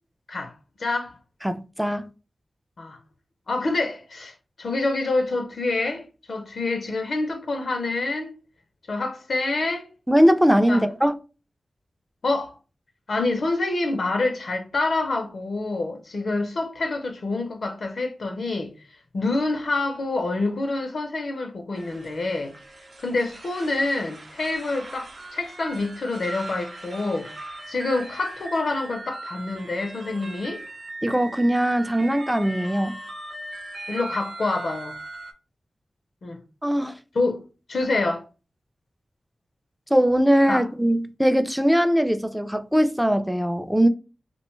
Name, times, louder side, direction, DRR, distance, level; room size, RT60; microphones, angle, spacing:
voice 1, 0.8-1.1 2.8-3.0 3.5-8.4 8.9-9.9 10.7-10.9 12.2-12.6 13.1-18.7 19.1-22.5 23.0-27.3 27.7-30.6 33.9-34.9 36.2-36.4 37.1-38.2 40.5-40.6, left 2 dB, 75° left, 0.4 m, -27 dB
voice 2, 1.4-2.1 10.1-11.1 31.0-33.0 36.6-36.9 39.9-43.9, equal, 5° right, 0.3 m, -20 dB
sound 1, 21.8-35.3, right 2 dB, 60° right, 0.5 m, -39 dB
2.5 x 2.1 x 3.0 m
cardioid pair, 55°, 0 cm